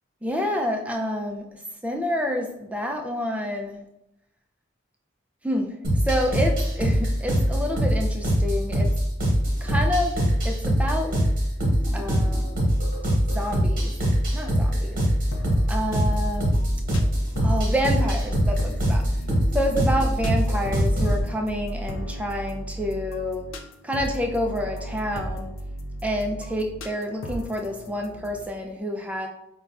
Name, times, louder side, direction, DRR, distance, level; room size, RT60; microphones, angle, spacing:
voice 1, 0.2-3.8 5.4-5.7 6.0-8.9 9.6-10.2 10.4-11.1 11.9-12.8 13.2-13.9 14.3-15.0 15.7-16.6 17.4-19.0 19.5-23.4 23.8-25.5 26.0-29.3, equal, 5° right, 2 dB, 0.3 m, -28 dB
sound 1, 5.8-21.2, equal, 45° right, 1.0 m, -23 dB
sound 2, 15.3-28.4, equal, 85° left, 0.4 m, -35 dB
5.0 x 2.2 x 2.4 m, 0.85 s
head